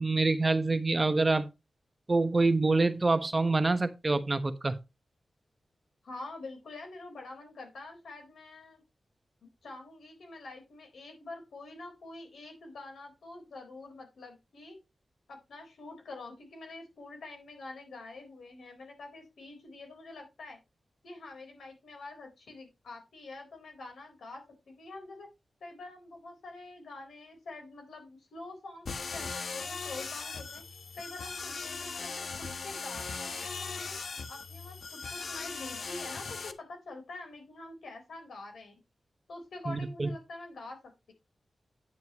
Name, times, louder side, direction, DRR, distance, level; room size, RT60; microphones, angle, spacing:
voice 1, 0.0-1.5 2.1-4.8 39.7-40.1, right 3 dB, 30° right, 1.1 m, -26 dB
voice 2, 6.0-8.8 9.6-14.8 15.3-20.6 21.0-25.3 25.6-30.6 30.9-34.0 34.3-38.8 39.3-40.8, left 2 dB, 90° left, 4.0 m, -46 dB
sound 1, 28.9-36.5, left 4 dB, 70° left, 1.0 m, -39 dB
9.5 x 9.1 x 3.0 m
cardioid pair, 70°, 0 cm